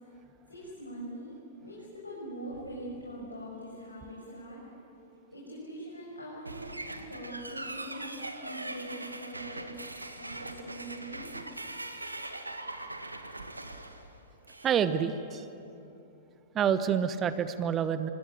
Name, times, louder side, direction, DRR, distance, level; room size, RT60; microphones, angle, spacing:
voice 1, 0.5-1.3 1.6-4.6 5.3-8.2 8.4-9.7 10.2-11.3, right 1 dB, 80° left, -5 dB, 6.8 m, -42 dB
sound 1, 6.4-14.8, right 2 dB, 80° right, 1.9 m, -41 dB
voice 2, 14.6-15.5 16.5-18.1, right 8 dB, 25° right, 12 dB, 1.1 m, -28 dB
26.0 x 25.5 x 9.0 m, 2.9 s
figure-of-eight pair, 100°, 0 cm